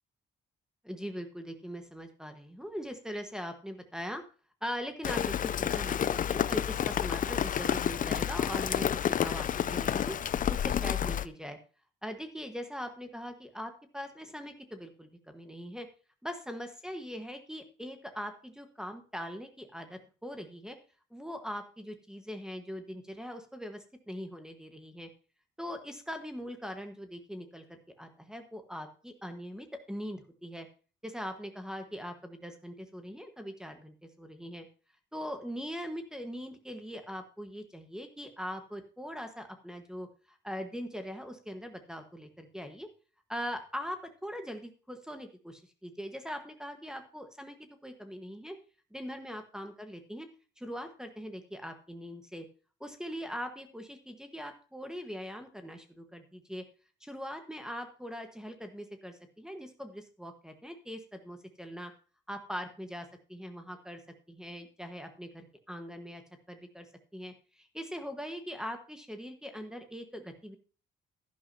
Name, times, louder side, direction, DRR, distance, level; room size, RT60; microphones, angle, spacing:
voice 1, 0.8-4.2 4.6-10.1 10.5-11.6 12.0-15.9 16.2-20.8 21.1-25.1 25.6-30.7 31.0-34.7 35.1-42.9 43.3-47.6 47.8-48.6 48.9-50.3 50.6-52.4 52.8-56.6 57.0-61.9 62.3-64.0 64.3-66.2 66.5-66.9 67.1-70.6, equal, 5° right, 5 dB, 1.4 m, -41 dB
Rain, 5.0-11.3, left 9 dB, 45° left, 0.5 m, -30 dB
11.5 x 10.5 x 2.8 m, 0.37 s
cardioid pair, 90°, 20 cm